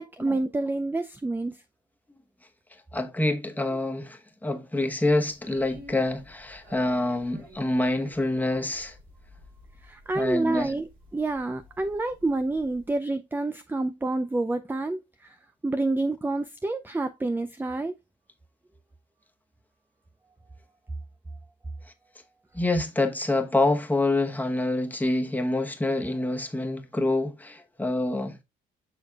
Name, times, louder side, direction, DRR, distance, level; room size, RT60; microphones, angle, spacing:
voice 1, 0.0-1.6 9.8-15.3 15.6-17.9, right 2 dB, 10° right, 0.4 m, -28 dB
voice 2, 2.9-8.9 10.1-10.7 22.5-28.4, left 2 dB, 10° left, 1.1 m, -26 dB
sound 1, 5.3-13.0, left 1 dB, 85° right, 3.2 m, -52 dB
6.4 x 6.3 x 2.4 m
cardioid pair, 90°, 20 cm